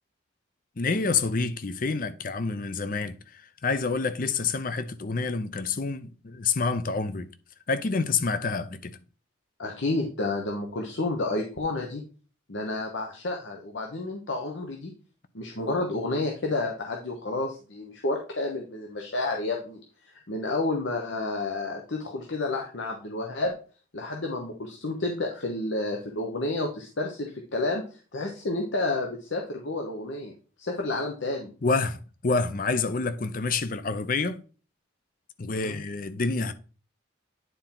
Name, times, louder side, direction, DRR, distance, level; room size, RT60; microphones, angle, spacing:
voice 1, 0.8-7.3 7.7-9.0 31.6-34.4 35.4-36.5, left 4 dB, 45° left, 0.6 m, -28 dB
voice 2, 9.6-12.0 12.5-14.9 15.3-19.8 20.3-23.5 23.9-30.3 30.6-31.5 35.5-35.8, left 2 dB, 70° left, 1.0 m, -30 dB
9.4 x 4.3 x 3.9 m
head